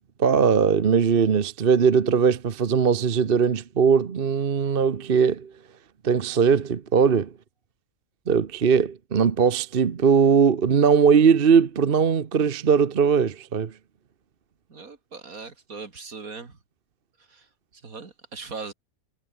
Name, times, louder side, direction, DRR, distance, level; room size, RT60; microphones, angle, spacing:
voice 1, 0.2-5.5 6.0-7.3 8.3-13.7, right 6 dB, 40° right, 1.1 m, -20 dB
voice 2, 14.7-16.6 17.2-18.7, right 4 dB, 70° right, 3.1 m, -40 dB
omnidirectional pair, 1.5 m